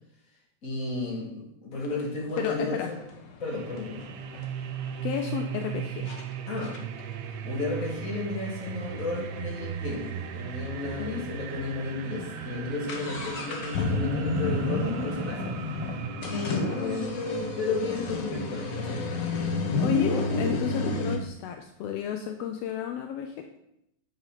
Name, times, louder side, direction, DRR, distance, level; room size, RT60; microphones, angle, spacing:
voice 1, 0.6-2.8 3.4-4.1 6.5-6.8 7.4-15.5 15.8-17.1 17.4-19.0 19.4-19.5, left 3 dB, 30° left, -2 dB, 1.9 m, -33 dB
sound 1, 1.8-1.9 2.4-5.0 5.6-5.7 6.1-6.2 6.6-10.3 10.6-10.7 10.9-11.0 11.6-11.7 12.0-21.2, left 3 dB, 65° left, 1.1 m, -31 dB
voice 2, 2.4-2.9 4.3-4.4 5.0-6.1 11.0-11.7 12.1-12.3 19.5-23.4, left 10 dB, 80° left, 5 dB, 1.4 m, -33 dB
sound 2, 3.4-21.4, right 9 dB, 75° right, 1.8 m, -38 dB
8.0 x 5.4 x 5.7 m, 0.81 s
omnidirectional pair, 3.4 m